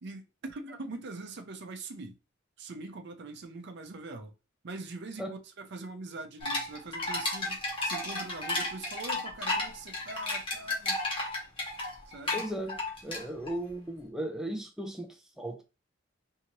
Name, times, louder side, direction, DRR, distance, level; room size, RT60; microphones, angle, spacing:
voice 1, 0.0-2.2 2.6-4.3 4.6-11.0 12.1-12.5, right 3 dB, 60° right, 0.6 m, -43 dB
sound 1, 6.4-13.6, left 2 dB, 25° left, 1.1 m, -33 dB
voice 2, 12.3-15.6, right 1 dB, 5° right, 0.4 m, -37 dB
2.8 x 2.5 x 2.9 m
head